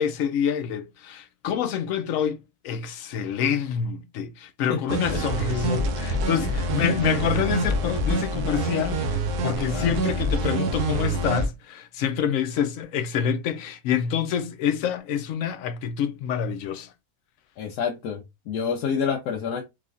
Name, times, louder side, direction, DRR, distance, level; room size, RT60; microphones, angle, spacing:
voice 1, 0.0-16.9, left 8 dB, 70° left, 0.9 m, -27 dB
sound 1, 4.9-11.5, right 2 dB, 85° right, 1.3 m, -26 dB
voice 2, 17.6-19.6, left 6 dB, 85° left, 1.2 m, -28 dB
4.7 x 2.4 x 2.5 m
omnidirectional pair, 1.6 m